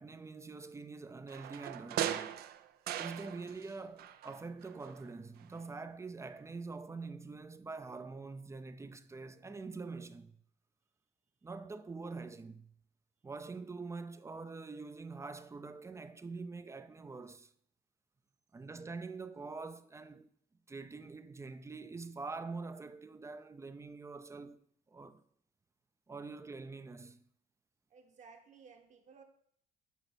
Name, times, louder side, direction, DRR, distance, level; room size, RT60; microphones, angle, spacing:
voice 1, 0.0-2.3 3.0-10.4 11.4-12.7 13.2-17.5 18.5-20.3 20.7-24.6 24.9-25.2 26.1-27.2, right 4 dB, 15° right, 0.4 m, -45 dB
sound 1, 1.3-3.7 4.0-5.1 5.4-5.5, right 11 dB, 65° right, 0.5 m, -39 dB
voice 2, 27.9-29.2, right 5 dB, 45° right, 1.3 m, -57 dB
8.2 x 4.1 x 6.0 m
cardioid pair, 110°, 17 cm